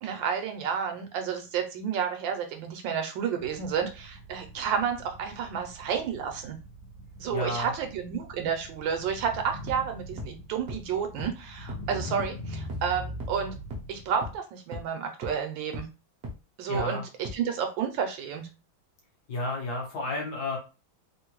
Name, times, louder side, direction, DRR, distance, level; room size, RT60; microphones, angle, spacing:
voice 1, 0.0-6.6 7.2-13.5 13.9-15.9 16.6-18.5, right 7 dB, 75° right, 5 dB, 1.2 m, -31 dB
sound 1, 3.4-14.4, equal, 85° left, 1.4 m, -42 dB
voice 2, 7.3-7.7 16.7-17.0 19.3-20.6, left 2 dB, 60° left, -1 dB, 1.3 m, -31 dB
sound 2, 9.7-9.8 10.2-10.3 10.7-10.8 11.2-11.3 11.7-11.8 12.2-12.3 12.7-12.8 13.2-13.3 13.7-13.8 14.2-14.3 14.7-14.8 15.2-15.3 15.7-15.8 16.2-16.3 16.7-16.8 17.2-17.3, equal, 55° right, 0.7 m, -36 dB
3.6 x 2.1 x 2.9 m, 0.30 s
omnidirectional pair, 2.2 m